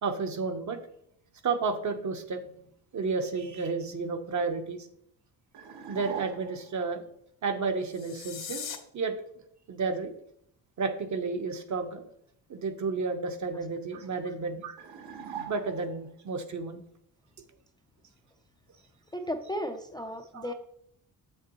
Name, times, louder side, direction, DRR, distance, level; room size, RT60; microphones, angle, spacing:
voice 1, 0.0-0.8 1.4-2.6 2.9-4.9 5.9-7.0 7.4-8.7 8.9-9.1 9.7-10.1 10.8-12.0 12.5-14.8 15.5-16.8 20.3-20.5, right 4 dB, 45° right, 6 dB, 0.9 m, -31 dB
sound 1, 5.5-6.7 14.8-16.1, right 8 dB, 70° right, 1.1 m, -42 dB
sound 2, 7.8-8.8, left 8 dB, 65° left, 1.2 m, -39 dB
voice 2, 19.1-20.5, equal, 10° left, 4 dB, 0.5 m, -34 dB
7.6 x 6.6 x 3.0 m, 0.71 s
cardioid pair, 105°, 40 cm